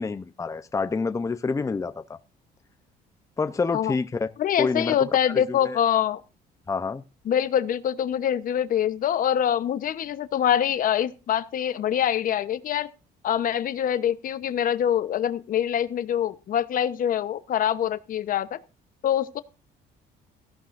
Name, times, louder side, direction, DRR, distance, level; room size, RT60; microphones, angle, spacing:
voice 1, 0.0-2.2 3.4-4.3 4.6-5.0 5.3-5.8 6.7-7.0, left 4 dB, 20° left, 0.7 m, -28 dB
voice 2, 4.4-6.2 7.3-12.9 13.2-18.6 19.0-19.4, left 10 dB, 55° left, 1.0 m, -24 dB
17.0 x 14.5 x 2.6 m
cardioid pair, 110°, 17 cm